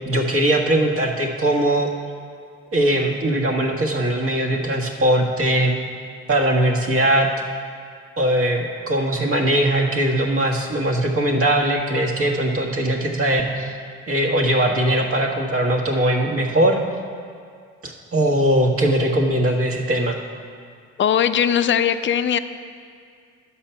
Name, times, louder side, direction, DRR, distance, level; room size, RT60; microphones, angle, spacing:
voice 1, 0.1-1.9 2.7-5.8 6.3-7.3 8.2-13.8 14.1-16.8 17.8-20.2, right 1 dB, 50° right, 1 dB, 1.5 m, -20 dB
voice 2, 21.0-22.4, left 9 dB, 40° left, 11 dB, 0.5 m, -19 dB
10.5 x 7.2 x 5.7 m, 2.2 s
cardioid pair, 90°, 30 cm